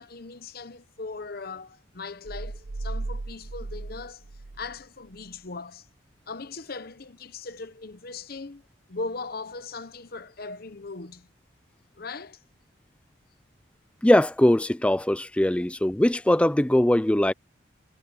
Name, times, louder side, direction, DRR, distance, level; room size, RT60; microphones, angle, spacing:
voice 1, 0.0-4.2 4.6-5.9 6.3-8.6 8.9-11.3 12.0-12.4, left 3 dB, 50° left, 0.9 m, -39 dB
sound 1, 2.2-4.8 5.1-5.3, right 2 dB, 50° right, 0.6 m, -36 dB
voice 2, 14.0-17.3, left 1 dB, 5° left, 0.3 m, -21 dB
head